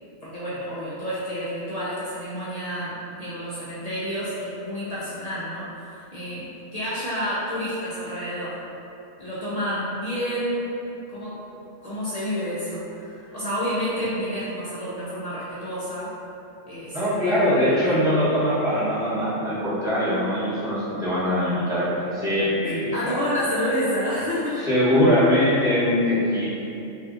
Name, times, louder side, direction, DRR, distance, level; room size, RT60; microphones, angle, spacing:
voice 1, 0.2-8.6 9.2-10.8 11.1-11.4 11.8-16.1 16.7-18.0 22.7-24.6, equal, 55° left, -10 dB, 0.4 m, -29 dB
voice 2, 16.9-23.2 24.6-26.5, equal, 5° right, -12 dB, 0.7 m, -22 dB
3.2 x 2.7 x 2.4 m, 2.8 s
omnidirectional pair, 1.3 m